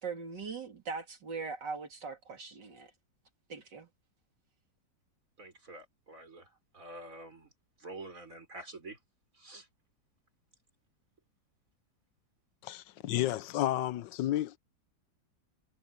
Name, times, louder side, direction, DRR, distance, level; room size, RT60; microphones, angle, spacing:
voice 1, 0.0-2.9 3.5-3.9, right 5 dB, 75° right, 3.3 m, -40 dB
voice 2, 5.4-7.5 7.8-9.0 9.3-9.7, right 2 dB, 45° right, 6.0 m, -47 dB
voice 3, 12.6-14.6, left 14 dB, 85° left, 1.4 m, -31 dB
omnidirectional pair, 1.9 m